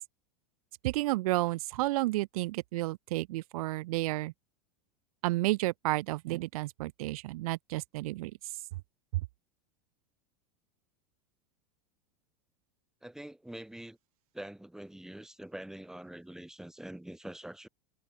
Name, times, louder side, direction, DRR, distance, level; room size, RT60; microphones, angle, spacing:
voice 1, 0.8-4.3 5.2-8.3, right 19 dB, 70° right, 2.1 m, -31 dB
voice 2, 13.0-14.0 14.3-17.7, right 1 dB, 5° right, 1.9 m, -45 dB
supercardioid pair, 135°, 19 cm